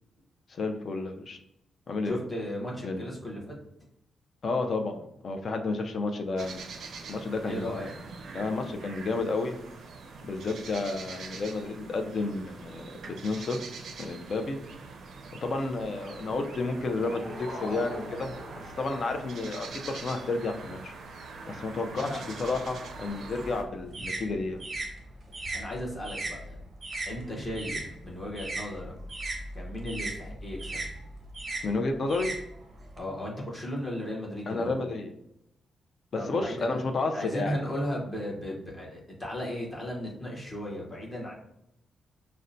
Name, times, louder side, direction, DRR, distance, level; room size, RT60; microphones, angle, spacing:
voice 1, 0.5-1.4 1.9-2.2 2.8-3.0 4.4-6.6 7.1-7.8 8.3-9.5 10.2-13.6 14.0-14.6 15.4-20.9 21.5-24.7 31.6-32.3 34.5-35.1 36.3-37.7, left 3 dB, 40° left, 4 dB, 0.4 m, -31 dB
voice 2, 2.0-3.6 7.4-7.9 21.9-22.2 25.5-26.6 27.0-28.9 29.5-30.9 33.0-34.8 36.1-36.8 37.1-41.3, left 1 dB, 15° left, -4 dB, 1.0 m, -36 dB
sound 1, 6.4-23.6, right 4 dB, 65° right, 0.4 m, -43 dB
sound 2, 16.6-19.6, left 1 dB, 60° left, 1.1 m, -43 dB
sound 3, 23.1-27.9 28.2-33.0, right 2 dB, 25° right, 0.6 m, -37 dB
5.3 x 2.1 x 2.6 m, 0.81 s
wide cardioid pair, 160°, 0 cm